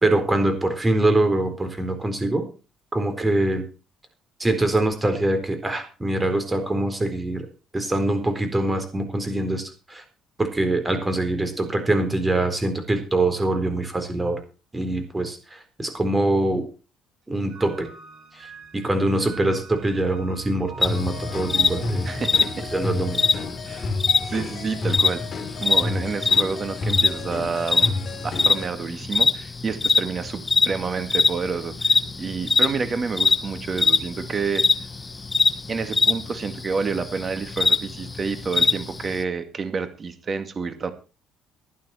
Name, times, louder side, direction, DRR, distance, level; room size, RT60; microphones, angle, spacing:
voice 1, 0.0-2.5 2.9-3.6 4.4-7.5 7.7-10.0 10.4-14.4 14.7-16.7 17.3-17.9 18.3-18.5 18.7-22.1 22.7-23.2, right 2 dB, 15° right, 7 dB, 4.2 m, -24 dB
sound 1, 17.5-24.8, right 3 dB, 70° right, 6.5 m, -42 dB
sound 2, 20.8-39.2, left 3 dB, 20° left, 1.3 m, -23 dB
sound 3, 20.9-28.7, left 3 dB, 45° left, 3.4 m, -31 dB
voice 2, 22.0-22.7 23.7-23.9 24.3-25.2 25.6-27.9 28.2-34.6 35.7-40.9, right 5 dB, 35° right, 10 dB, 2.2 m, -29 dB
15.5 x 11.0 x 4.4 m, 0.34 s
cardioid pair, 110°, 0 cm